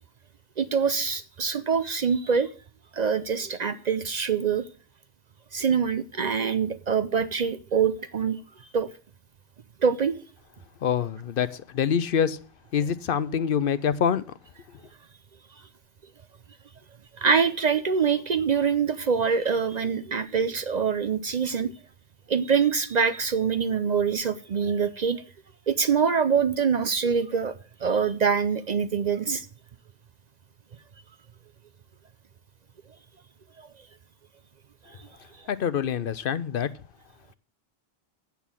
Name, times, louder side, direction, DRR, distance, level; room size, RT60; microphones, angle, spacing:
voice 1, 0.6-2.5 2.9-4.6 5.5-8.4 8.7-8.9 9.8-10.2 17.2-21.7 22.3-25.2 25.7-27.5 27.8-29.5 33.6-33.7, right 6 dB, 50° right, 12 dB, 0.6 m, -24 dB
voice 2, 10.8-12.4 12.7-14.2 35.5-36.7, left 8 dB, 65° left, 15 dB, 0.8 m, -25 dB
8.3 x 7.1 x 7.1 m, 0.40 s
omnidirectional pair, 1.1 m